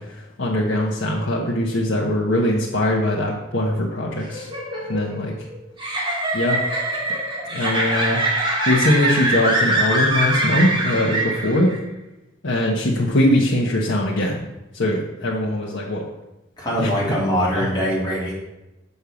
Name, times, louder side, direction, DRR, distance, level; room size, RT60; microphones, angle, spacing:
voice 1, 0.1-4.5 4.9-5.3 6.3-6.6 7.5-8.2 8.7-11.7 12.4-14.4 14.7-16.0 16.8-16.9 17.5-17.7, left 1 dB, 65° left, -4 dB, 1.2 m, -21 dB
sound 1, 4.1-11.8, right 1 dB, 25° right, 2.2 m, -23 dB
voice 2, 16.6-18.3, equal, 20° left, -6 dB, 3.1 m, -22 dB
6.7 x 5.5 x 7.0 m, 0.97 s
head